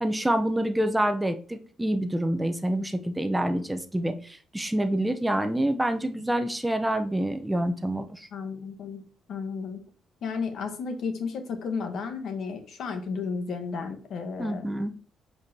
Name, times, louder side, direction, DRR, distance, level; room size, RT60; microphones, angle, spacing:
voice 1, 0.0-8.3 14.4-14.9, right 1 dB, 10° right, 7 dB, 0.7 m, -27 dB
voice 2, 8.3-9.0 9.3-9.8 10.2-14.7, left 5 dB, 70° left, 7 dB, 1.1 m, -33 dB
7.2 x 4.7 x 2.8 m, 0.42 s
cardioid pair, 90°, 0 cm